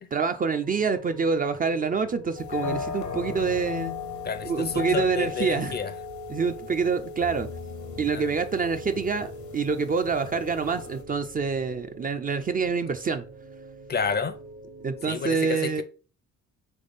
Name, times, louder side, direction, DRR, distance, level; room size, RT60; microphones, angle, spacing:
voice 1, 0.1-3.9 4.4-5.8 6.3-7.5 8.0-13.2 14.8-15.8, right 5 dB, 30° right, 0.4 m, -26 dB
sound 1, 0.6-15.3, right 1 dB, 75° right, 1.0 m, -43 dB
sound 2, 2.3-11.0, left 8 dB, 75° left, 0.9 m, -37 dB
voice 2, 4.2-5.9 8.1-8.3 13.9-14.4 15.1-15.8, left 6 dB, 35° left, 0.5 m, -30 dB
3.6 x 3.1 x 3.9 m
cardioid pair, 90°, 30 cm